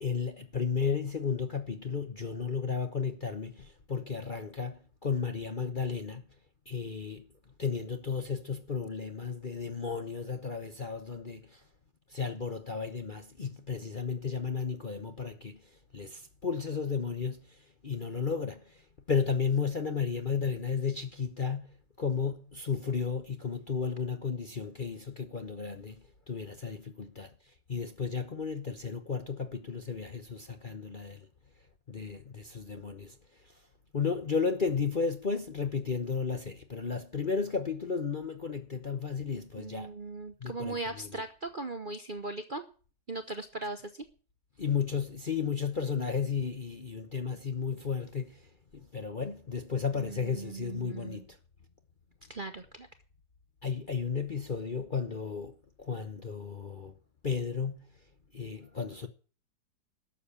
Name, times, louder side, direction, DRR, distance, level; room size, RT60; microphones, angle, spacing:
voice 1, 0.0-6.3 6.7-7.3 7.6-11.6 12.1-27.3 27.7-31.3 31.9-33.2 33.4-33.6 33.9-39.9 40.4-41.2 44.6-51.4 53.6-56.9 57.2-57.9 58.3-59.1, left 5 dB, 35° left, 0.9 m, -34 dB
voice 2, 39.6-42.6 43.1-44.0 49.9-51.2 52.3-52.9, right 2 dB, 35° right, 0.9 m, -39 dB
12.5 x 7.4 x 8.3 m
omnidirectional pair, 1.9 m